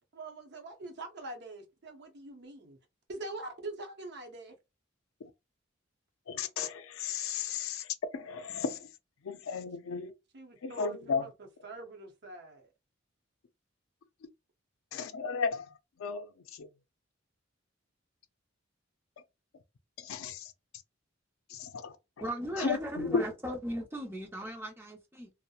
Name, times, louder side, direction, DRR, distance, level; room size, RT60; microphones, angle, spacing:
voice 1, 0.1-2.8 3.1-4.6 9.5-9.7 10.3-12.7 22.6-22.7, right 2 dB, 55° right, 0.7 m, -44 dB
voice 2, 6.3-7.9 8.1-8.9 9.2-10.1 10.6-11.2 14.9-15.7 16.0-16.3 16.6-16.7 20.0-20.5 21.5-21.9 22.6-23.2, left 5 dB, 85° left, 0.4 m, -34 dB
voice 3, 22.2-25.3, equal, 10° right, 0.6 m, -37 dB
2.8 x 2.0 x 2.3 m
head